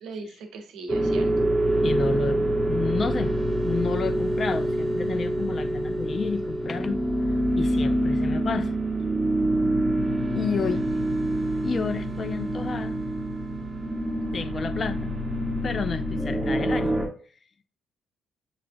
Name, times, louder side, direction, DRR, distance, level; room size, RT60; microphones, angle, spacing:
voice 1, 0.0-1.3 10.9-11.0, right 3 dB, 90° right, 0.8 m, -39 dB
sound 1, 0.9-17.1, right 1 dB, 10° right, 1.0 m, -26 dB
voice 2, 1.8-2.4 2.7-3.4 3.6-7.0 7.6-8.8 10.3-10.8 11.6-13.0 14.3-15.1 15.6-17.0, left 5 dB, 45° left, 0.3 m, -30 dB
7.1 x 2.9 x 2.5 m
cardioid pair, 90°, 0 cm